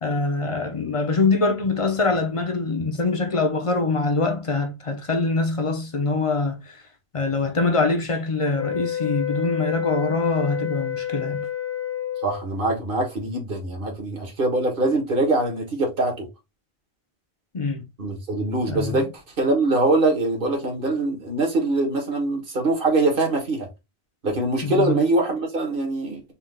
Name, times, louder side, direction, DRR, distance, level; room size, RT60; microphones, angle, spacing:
voice 1, 0.0-6.6 7.1-11.5 17.5-17.8 18.7-19.1 24.6-25.0, left 3 dB, 35° left, 0.7 m, -24 dB
sound 1, 8.5-12.5, left 10 dB, 65° left, 0.8 m, -29 dB
voice 2, 12.2-16.3 18.0-19.1 19.4-23.7 24.2-26.2, right 2 dB, 55° right, 1.5 m, -23 dB
4.4 x 2.5 x 3.7 m
omnidirectional pair, 1.1 m